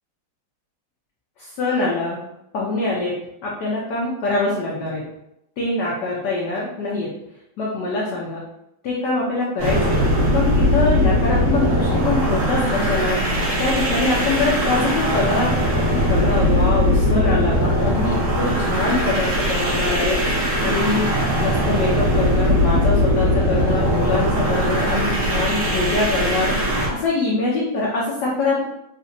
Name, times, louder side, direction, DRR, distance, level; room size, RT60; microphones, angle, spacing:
voice 1, 1.4-2.2 2.5-3.1 3.4-5.0 5.6-7.1 7.6-8.5 8.8-10.0 10.3-13.2 13.6-15.5 15.9-20.2 20.6-26.5 26.9-28.6, left 3 dB, 70° left, -4 dB, 1.0 m, -24 dB
sound 1, 9.6-26.9, equal, 50° right, 1.0 m, -20 dB
4.0 x 2.5 x 2.6 m, 0.82 s
omnidirectional pair, 2.4 m